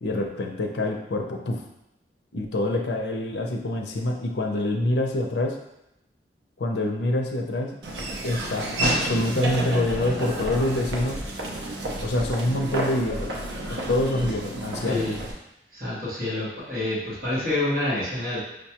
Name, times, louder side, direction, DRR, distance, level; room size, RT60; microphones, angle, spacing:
voice 1, 0.0-1.6 2.3-5.6 6.6-7.8 8.2-11.2 12.0-13.3 13.7-15.1, left 1 dB, 75° left, 2 dB, 0.5 m, -26 dB
Laughter / Walk footsteps, 7.8-15.3, right 1 dB, 75° right, 0.5 m, -30 dB
voice 2, 15.7-18.4, left 1 dB, 50° right, -10 dB, 1.2 m, -27 dB
5.1 x 2.2 x 2.9 m, 0.86 s
head